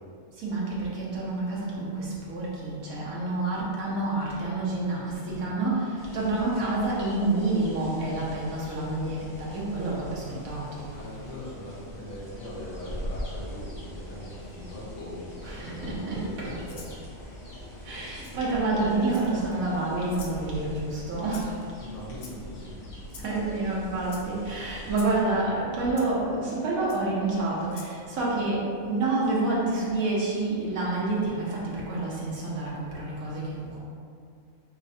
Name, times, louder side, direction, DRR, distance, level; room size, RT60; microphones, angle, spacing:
voice 1, 0.4-10.9 15.4-16.5 17.8-21.5 23.2-33.8, right 2 dB, 90° right, -6 dB, 1.4 m, -28 dB
sound 1, 6.0-25.2, equal, 40° left, 1.1 m, -42 dB
voice 2, 10.9-16.9 21.8-22.8, left 1 dB, 80° left, -6 dB, 1.4 m, -41 dB
Rattle (instrument), 16.7-17.0 18.2-18.3 19.1-19.5 20.1-20.4 21.3-21.6 22.2-22.6 23.1-23.3 24.1-24.2 24.9-25.1 26.0-26.1 26.9-27.0 27.7-27.9, left 4 dB, 60° left, 0.5 m, -46 dB
4.1 x 3.7 x 2.7 m, 2.3 s
omnidirectional pair, 1.4 m